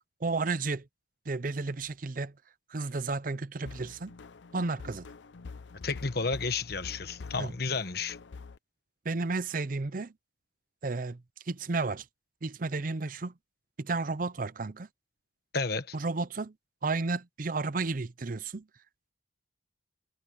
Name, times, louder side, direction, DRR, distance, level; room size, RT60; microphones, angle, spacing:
voice 1, 0.2-0.9 1.3-2.3 2.7-4.1 4.5-5.1 7.4-7.5 9.0-10.1 10.8-12.1 12.4-13.3 13.8-14.9 15.9-16.5 16.8-18.7, right 3 dB, 45° right, 0.6 m, -32 dB
sound 1, 3.6-8.6, left 4 dB, 70° left, 0.5 m, -46 dB
voice 2, 5.8-8.2 15.5-15.9, left 4 dB, 50° left, 1.3 m, -31 dB
head